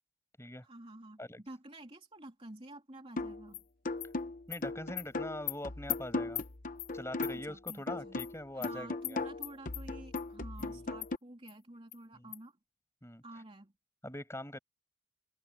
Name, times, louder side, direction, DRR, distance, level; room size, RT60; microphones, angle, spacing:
voice 1, 0.6-3.6 7.3-8.2 8.5-12.6 13.2-13.7, right 1 dB, 25° right, 3.2 m, -50 dB
sound 1, 3.2-3.5 3.8-7.5 7.9-11.2, left 2 dB, 35° left, 0.9 m, -38 dB
Animal, 3.5-3.6 4.0-4.1 4.5-4.6 5.0-5.1 5.5-5.6 5.9-6.0 6.4-6.5 6.8-6.9 7.2-7.3 7.7-7.8 8.2-8.3 8.6-8.7 9.0-9.2 9.4-9.8 10.2-10.3 10.6-10.7 11.0-11.1 11.5-11.6 11.9-12.0 12.3-12.4, left 16 dB, 85° left, 2.3 m, -38 dB
voice 2, 4.5-6.4 6.9-9.2 10.6-10.8 12.1-12.3 13.0-13.2 14.0-14.6, left 1 dB, 10° left, 6.7 m, -43 dB
open air
head